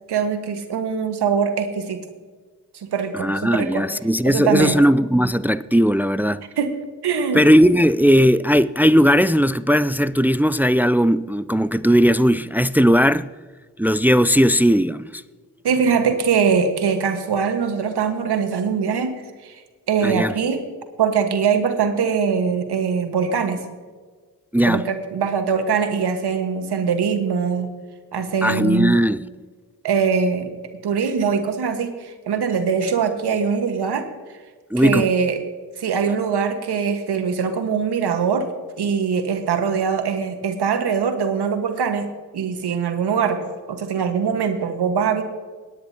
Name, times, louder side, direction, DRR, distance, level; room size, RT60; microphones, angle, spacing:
voice 1, 0.1-2.0 2.9-3.8 4.2-4.8 6.6-6.7 7.0-7.4 15.6-19.1 19.4-19.6 19.9-20.6 21.0-23.6 24.7-27.7 28.1-29.0 29.8-30.5 30.8-34.1 34.8-35.4 35.8-38.5 38.8-42.1 42.3-45.2, right 6 dB, 75° right, 1.5 m, -22 dB
voice 2, 3.1-6.4 7.3-13.3 13.8-15.2 20.0-20.3 24.5-24.8 28.4-29.2 34.7-35.1, equal, 5° right, 0.3 m, -17 dB
18.5 x 9.9 x 2.8 m
supercardioid pair, 45°, 40 cm